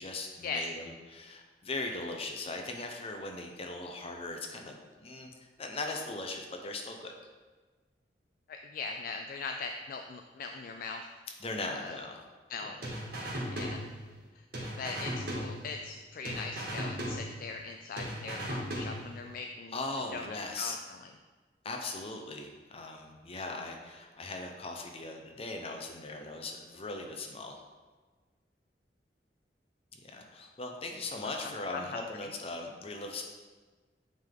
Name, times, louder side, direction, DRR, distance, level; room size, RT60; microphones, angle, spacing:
voice 1, 0.0-5.3 5.6-7.1 11.4-12.2 12.6-12.7 19.7-20.8 21.6-27.6 30.0-33.2, left 2 dB, 35° left, 2 dB, 0.8 m, -39 dB
voice 2, 8.5-11.1 11.7-12.0 12.5-12.8 13.5-13.8 14.4-14.5 14.8-19.8 20.1-20.3 20.6-21.0 31.2-32.0, left 4 dB, 50° left, 4 dB, 0.3 m, -40 dB
sound 1, 12.8-14.3 14.5-16.0 16.2-17.7 18.0-19.3, equal, 60° right, 1.7 m, -37 dB
8.6 x 3.6 x 3.8 m, 1.4 s
head